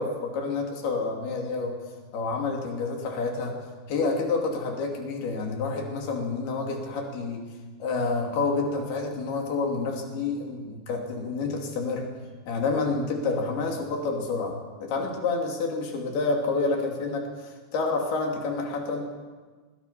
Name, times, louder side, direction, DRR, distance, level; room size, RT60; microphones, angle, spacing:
voice 1, 0.0-1.7 2.1-3.6 3.9-7.4 7.8-12.1 12.5-19.1, left 3 dB, 85° left, 1 dB, 4.7 m, -28 dB
24.0 x 21.0 x 5.8 m, 1.4 s
omnidirectional pair, 4.4 m